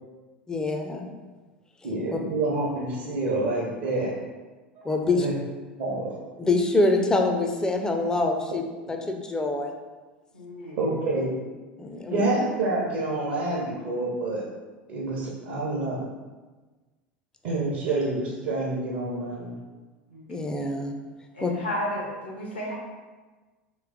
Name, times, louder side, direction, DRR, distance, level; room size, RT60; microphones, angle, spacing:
voice 1, 0.5-1.1 2.1-2.2 4.8-5.3 6.4-8.6 8.9-9.7 11.8-12.2 20.3-20.9 21.4-21.5, left 2 dB, 10° left, 3 dB, 0.5 m, -25 dB
voice 2, 1.8-4.1 4.8-4.9 5.1-5.4 5.8-6.2 10.8-11.3 12.1-14.4 14.9-16.0 17.4-19.5, right 2 dB, 55° right, -4 dB, 0.8 m, -27 dB
voice 3, 10.3-10.8 20.1-20.2 21.3-22.7, left 1 dB, 80° left, -4 dB, 1.1 m, -33 dB
3.1 x 3.1 x 3.7 m, 1.3 s
figure-of-eight pair, 75°, 6 cm